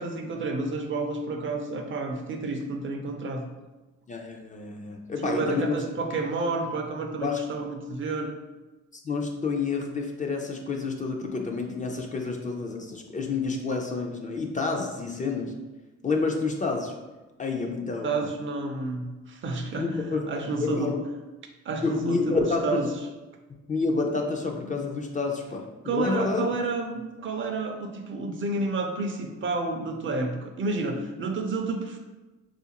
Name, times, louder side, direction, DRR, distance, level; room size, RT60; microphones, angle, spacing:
voice 1, 0.0-3.5 5.2-8.4 18.0-20.9 21.7-22.4 22.6-22.9 25.8-32.0, right 3 dB, 40° right, 4 dB, 0.4 m, -30 dB
voice 2, 4.1-5.8 7.2-7.4 8.9-15.5 16.0-16.9 17.4-18.3 19.8-20.3 20.6-21.0 21.8-22.8 23.7-26.5, left 4 dB, 25° left, 1 dB, 0.4 m, -29 dB
3.4 x 2.4 x 2.8 m, 1.1 s
cardioid pair, 90°, 30 cm